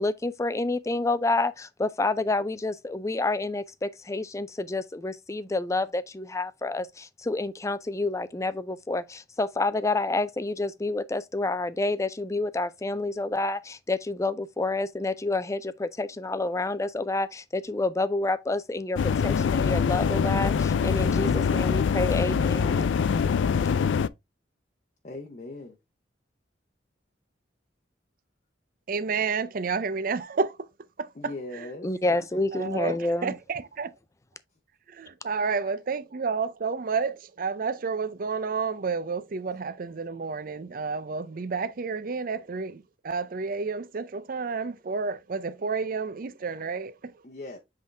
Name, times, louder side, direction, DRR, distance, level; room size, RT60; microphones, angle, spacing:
voice 1, 0.0-22.9 31.8-33.4, left 2 dB, 15° left, 0.4 m, -29 dB
sound 1, 19.0-24.1, left 6 dB, 85° left, 0.4 m, -24 dB
voice 2, 25.0-25.8 31.1-31.9 35.5-35.7 47.2-47.6, left 2 dB, 40° left, 0.8 m, -39 dB
voice 3, 28.9-30.5 32.5-33.0 33.2-33.9 35.0-46.9, right 5 dB, 50° right, 0.5 m, -30 dB
7.6 x 3.7 x 3.3 m
head